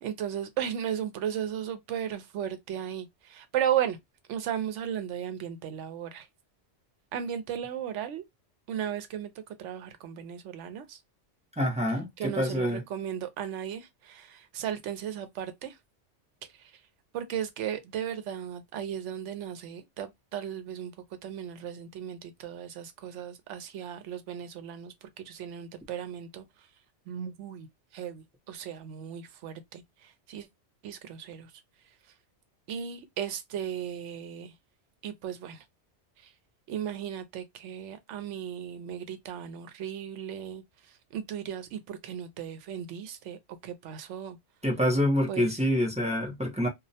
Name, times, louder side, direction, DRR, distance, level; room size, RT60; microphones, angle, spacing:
voice 1, 0.0-4.0 4.3-6.3 7.1-8.2 8.7-9.3 9.6-11.0 12.2-15.7 16.6-16.7 17.1-20.9 21.2-24.9 25.3-26.4 27.1-27.7 27.9-30.5 30.8-31.5 32.7-34.5 35.0-35.6 36.7-40.6 41.1-44.4 45.3-45.6, right 9 dB, 85° right, 0.9 m, -35 dB
voice 2, 11.6-12.8 44.6-46.7, equal, 10° right, 0.4 m, -26 dB
2.3 x 2.0 x 2.6 m
omnidirectional pair, 1.2 m